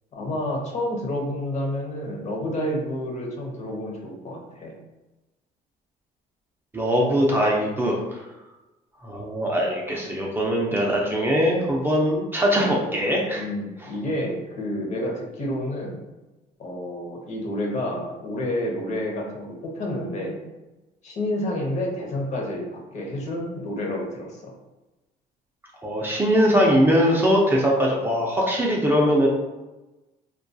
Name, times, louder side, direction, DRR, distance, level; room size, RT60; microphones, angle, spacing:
voice 1, 0.1-4.7 13.3-16.0 16.6-20.4 21.0-24.5, left 1 dB, 45° left, -1 dB, 0.7 m, -29 dB
voice 2, 6.7-8.2 9.0-13.4 25.8-29.3, equal, 15° right, -3 dB, 0.4 m, -21 dB
2.2 x 2.2 x 2.6 m, 1.0 s
cardioid pair, 110°, 17 cm